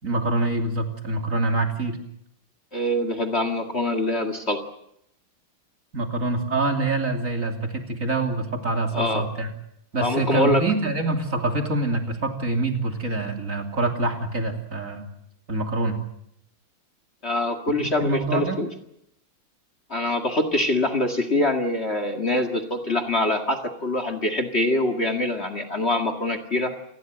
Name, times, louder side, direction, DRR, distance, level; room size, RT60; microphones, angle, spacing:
voice 1, 0.0-2.0 5.9-9.5 9.9-15.0 15.5-16.0 17.8-18.6, right 2 dB, 40° right, 4 dB, 3.2 m, -25 dB
voice 2, 2.7-4.6 8.9-9.3 10.0-10.6 17.2-18.7 19.9-26.7, left 1 dB, 30° left, 10 dB, 2.1 m, -24 dB
28.0 x 20.0 x 7.8 m, 0.76 s
omnidirectional pair, 2.3 m